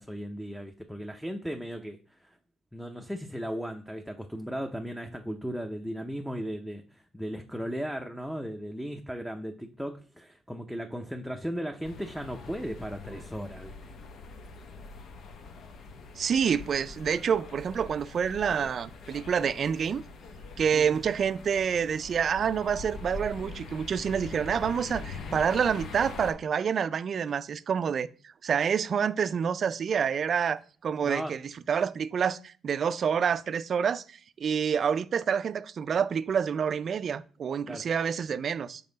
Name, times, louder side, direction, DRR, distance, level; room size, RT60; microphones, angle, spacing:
voice 1, 0.0-2.3 2.7-13.9 20.7-20.9 31.0-31.4 37.7-37.8, equal, ahead, 0.6 m, -36 dB
sound 1, 11.8-26.3, left 3 dB, 70° left, 0.8 m, -43 dB
voice 2, 16.1-20.0 20.6-28.1 28.4-31.4 31.7-38.8, right 7 dB, 55° right, 0.4 m, -28 dB
5.3 x 4.8 x 3.9 m
cardioid pair, 90°, 0 cm